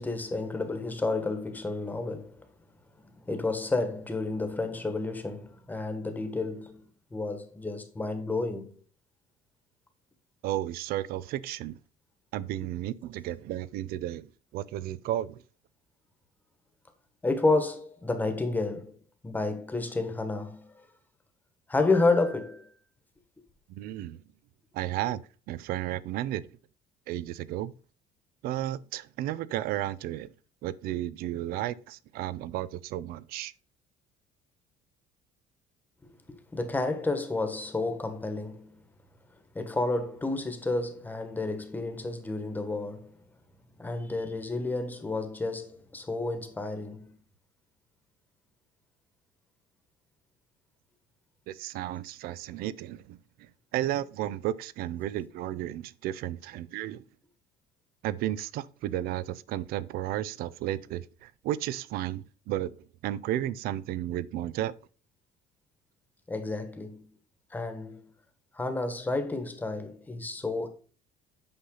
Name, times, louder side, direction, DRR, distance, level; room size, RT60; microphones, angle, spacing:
voice 1, 0.0-2.4 3.2-6.8 7.1-8.7 17.2-19.0 19.2-20.7 21.7-22.7 36.0-38.8 39.5-43.1 43.8-47.1 66.3-67.1 67.5-68.0 68.5-70.7, left 3 dB, 10° left, 1.3 m, -30 dB
voice 2, 10.4-11.7 12.3-15.4 23.7-24.2 24.7-25.2 25.5-26.5 27.1-27.7 28.4-30.3 30.6-33.5 51.5-53.2 53.7-57.0 58.0-62.8 63.0-64.7, right 13 dB, 65° right, 0.5 m, -33 dB
8.8 x 5.7 x 3.9 m
cardioid pair, 155°, 16 cm